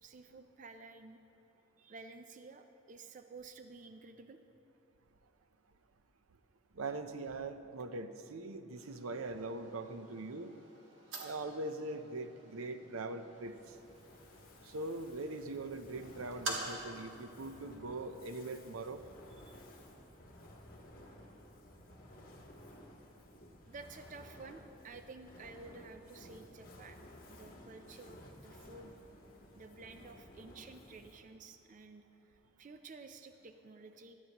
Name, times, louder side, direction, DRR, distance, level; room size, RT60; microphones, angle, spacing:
voice 1, 0.0-1.2 1.8-4.4 23.7-28.9 29.5-34.1, right 3 dB, 40° right, 8 dB, 0.4 m, -52 dB
voice 2, 6.7-10.5 11.2-13.8 14.6-19.0, right 2 dB, 90° right, 9 dB, 0.7 m, -42 dB
sound 1, 8.7-17.0, right 2 dB, 60° right, 1.6 m, -48 dB
Fire, 13.4-31.4, left 1 dB, 45° left, 1.5 m, -56 dB
17.0 x 12.5 x 3.0 m, 2.8 s
head